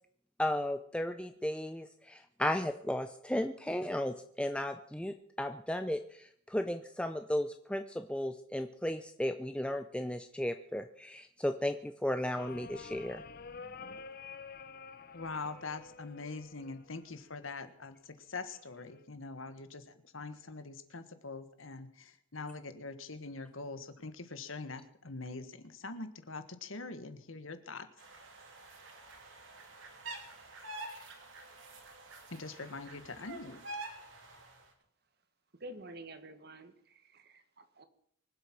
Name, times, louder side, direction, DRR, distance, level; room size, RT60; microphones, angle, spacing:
voice 1, 0.4-13.2, left 1 dB, 5° left, 7 dB, 0.6 m, -35 dB
sound 1, 12.4-17.4 18.5-19.0, left 5 dB, 50° left, 0.8 m, -49 dB
voice 2, 15.1-27.9 32.3-33.6, left 3 dB, 80° left, 11 dB, 1.5 m, -43 dB
sound 2, 28.0-34.6, right 2 dB, 70° right, 3.2 m, -47 dB
voice 3, 35.6-37.8, right 1 dB, 50° right, 10 dB, 1.6 m, -49 dB
24.5 x 8.2 x 6.0 m, 0.64 s
head